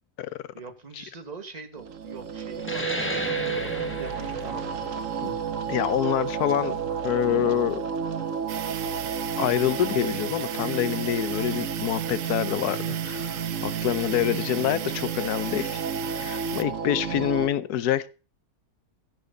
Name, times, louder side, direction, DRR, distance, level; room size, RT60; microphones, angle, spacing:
voice 1, 0.5-4.9, right 4 dB, 25° right, 5 dB, 2.0 m, -43 dB
sound 1, 1.8-17.5, right 6 dB, 55° right, 1.5 m, -31 dB
sound 2, 2.6-7.7, left 1 dB, 10° left, 1.7 m, -35 dB
voice 2, 5.7-6.8 7.0-7.8 9.4-15.8 16.1-18.1, left 11 dB, 80° left, 16 dB, 1.3 m, -26 dB
sound 3, 8.5-16.6, right 10 dB, 80° right, 1.4 m, -37 dB
16.0 x 7.9 x 4.0 m, 0.33 s
omnidirectional pair, 1.7 m